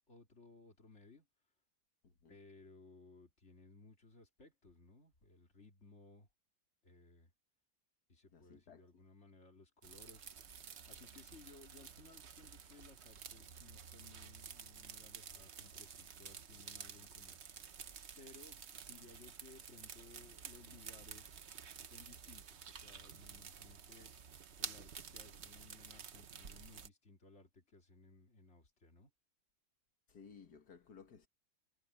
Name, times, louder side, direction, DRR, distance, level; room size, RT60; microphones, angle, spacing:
voice 1, 0.1-1.3 2.3-6.3 6.8-7.3 8.1-10.3 10.9-17.4 18.2-21.5 21.8-24.1 24.6-29.1, left 3 dB, 45° left, 3.2 m, -60 dB
voice 2, 2.0-2.3 8.3-8.8 30.1-31.3, left 6 dB, 85° left, 2.2 m, -58 dB
sound 1, 9.8-26.9, right 7 dB, 50° right, 1.2 m, -51 dB
omnidirectional pair, 1.7 m